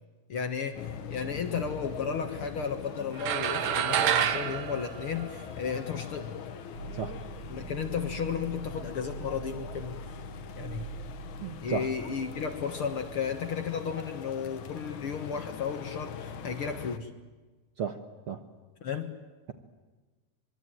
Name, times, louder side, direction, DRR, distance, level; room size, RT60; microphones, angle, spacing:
voice 1, 0.3-0.8 1.1-6.4 7.5-10.2 10.6-10.9 11.6-17.1 18.8-19.1, left 6 dB, 50° left, 7 dB, 1.9 m, -34 dB
sound 1, 0.7-17.0, left 8 dB, 70° left, 2.7 m, -42 dB
sound 2, 3.2-5.8, right 10 dB, 80° right, 2.8 m, -28 dB
sound 3, 6.7-12.7, right 5 dB, 40° right, 4.2 m, -44 dB
voice 2, 11.4-11.9 17.8-18.4, right 6 dB, 55° right, 7 dB, 1.6 m, -34 dB
25.5 x 23.0 x 9.1 m, 1.3 s
omnidirectional pair, 3.8 m